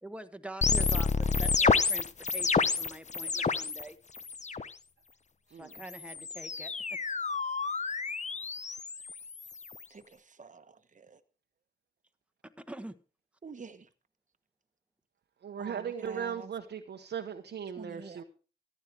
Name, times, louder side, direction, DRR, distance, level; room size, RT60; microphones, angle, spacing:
voice 1, 0.0-4.0 5.5-7.0 12.4-12.9, right 1 dB, 5° right, 1.4 m, -45 dB
sound 1, 0.6-3.8 4.1-4.7 5.7-9.8, left 4 dB, 40° left, 0.8 m, -30 dB
voice 2, 0.7-1.5 9.9-11.2 13.4-13.9 15.6-16.5 17.8-18.2, right 5 dB, 45° right, 1.2 m, -47 dB
voice 3, 15.4-18.2, right 8 dB, 75° right, 1.1 m, -38 dB
14.5 x 9.6 x 4.6 m
supercardioid pair, 40°, 18 cm